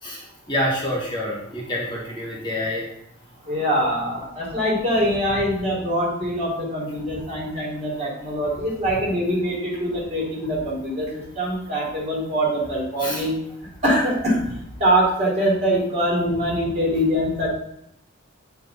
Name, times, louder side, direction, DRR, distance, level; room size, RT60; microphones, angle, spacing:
voice 1, 0.0-2.9 13.0-13.2, left 1 dB, 25° left, -4 dB, 1.5 m, -27 dB
voice 2, 3.5-11.1 11.4-13.4 13.8-14.5 14.8-17.5, equal, 35° right, -4 dB, 3.0 m, -23 dB
8.6 x 4.7 x 4.1 m, 0.77 s
head